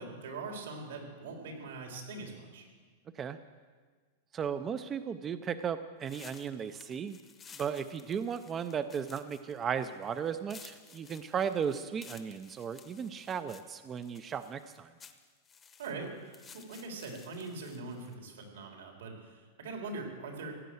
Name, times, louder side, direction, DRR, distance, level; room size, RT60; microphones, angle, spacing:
voice 1, 0.0-2.7 15.8-20.5, right 3 dB, 80° right, 1 dB, 3.7 m, -42 dB
voice 2, 4.3-7.2 7.6-14.9, right 7 dB, 20° right, 11 dB, 0.4 m, -35 dB
sound 1, 6.0-18.1, left 6 dB, 15° left, 0.8 m, -55 dB
15.5 x 10.0 x 7.8 m, 1.5 s
supercardioid pair, 160°, 0 cm